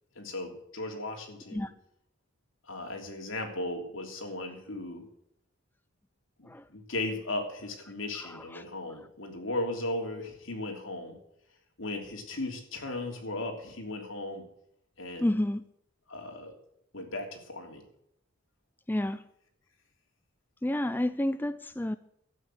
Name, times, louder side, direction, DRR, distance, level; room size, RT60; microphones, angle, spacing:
voice 1, 0.1-1.7 2.7-5.1 6.4-11.2 11.8-14.5 15.0-15.4 16.1-16.5 16.9-17.8, left 2 dB, 75° left, 3 dB, 3.2 m, -36 dB
voice 2, 8.1-8.6 15.2-15.6 18.9-19.2 20.6-22.0, left 1 dB, 10° left, 12 dB, 0.4 m, -30 dB
12.5 x 8.9 x 7.5 m, 0.75 s
head